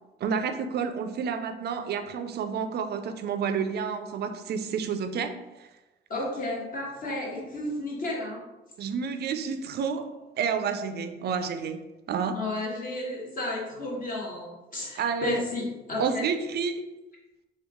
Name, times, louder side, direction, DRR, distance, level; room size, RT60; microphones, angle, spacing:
voice 1, 0.2-5.7 8.8-10.1 10.4-11.8 12.1-12.4 15.0-15.5 16.0-16.8, right 6 dB, 55° right, 8 dB, 0.4 m, -30 dB
voice 2, 6.1-8.4 12.3-16.2, left 2 dB, 45° left, -3 dB, 1.0 m, -32 dB
3.0 x 2.3 x 3.5 m, 1.1 s
cardioid pair, 90°, 20 cm